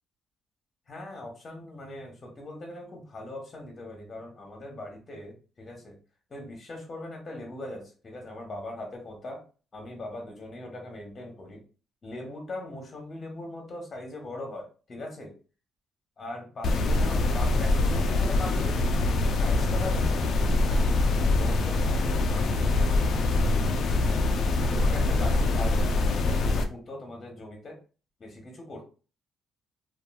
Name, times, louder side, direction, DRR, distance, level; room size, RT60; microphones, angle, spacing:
voice 1, 0.9-6.0 6.3-9.4 9.7-11.6 12.0-15.4 16.2-18.9 19.3-20.9 21.2-22.7 23.1-23.5 24.7-27.8 28.2-28.9, left 1 dB, 40° left, 2 dB, 1.0 m, -40 dB
sound 1, 16.6-26.6, left 2 dB, 65° left, 0.4 m, -24 dB
3.0 x 2.4 x 2.3 m, 0.36 s
cardioid pair, 90°, 0 cm